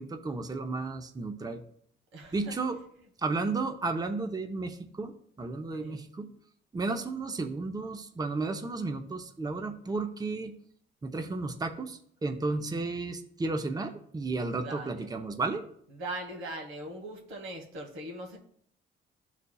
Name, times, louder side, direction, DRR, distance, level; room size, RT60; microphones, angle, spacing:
voice 1, 0.0-1.6 2.3-2.8 3.2-5.1 5.4-6.3 6.7-10.5 11.0-15.6, right 3 dB, 20° right, 6 dB, 0.7 m, -33 dB
voice 2, 2.1-2.6 3.4-3.5 5.7-6.1 14.3-15.1 15.9-18.4, right 1 dB, 90° right, 1 dB, 1.5 m, -41 dB
12.0 x 4.1 x 2.3 m, 0.64 s
cardioid pair, 90°, 20 cm